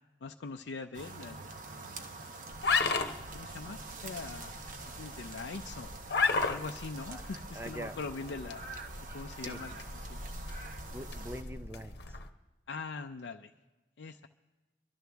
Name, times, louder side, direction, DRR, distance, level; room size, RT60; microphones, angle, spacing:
voice 1, 0.2-2.4 3.3-6.0 6.5-8.7 9.1-9.8 10.1-10.3 12.7-13.5 14.0-14.3, left 4 dB, 80° left, 4 dB, 0.5 m, -43 dB
sound 1, 0.9-11.4, right 3 dB, 45° right, 0.9 m, -46 dB
sound 2, 2.5-12.3, left 4 dB, 65° left, 1.0 m, -36 dB
voice 2, 7.5-8.0 9.4-9.6 10.9-12.2, equal, 15° right, 10 dB, 0.5 m, -43 dB
25.0 x 12.5 x 3.5 m, 1.2 s
head